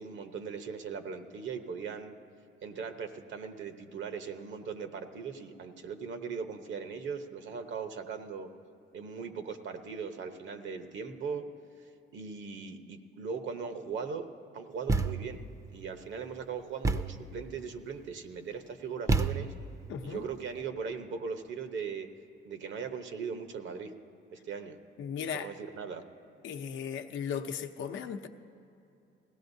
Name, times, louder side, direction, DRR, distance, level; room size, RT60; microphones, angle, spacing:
voice 1, 0.0-2.2 2.6-8.5 8.9-11.5 11.8-14.3 14.5-15.4 15.7-19.5 20.0-22.1 22.4-23.9 24.3-24.8 25.3-26.0, right 6 dB, 70° right, 7 dB, 0.9 m, -39 dB
Thump thud, 14.9-15.4 16.8-17.3 19.1-19.8, right 3 dB, 15° right, 0.5 m, -29 dB
voice 2, 19.9-20.2 25.0-25.5 26.4-28.3, left 7 dB, 80° left, 6 dB, 0.7 m, -36 dB
20.0 x 16.0 x 2.7 m, 2.8 s
cardioid pair, 90°, 20 cm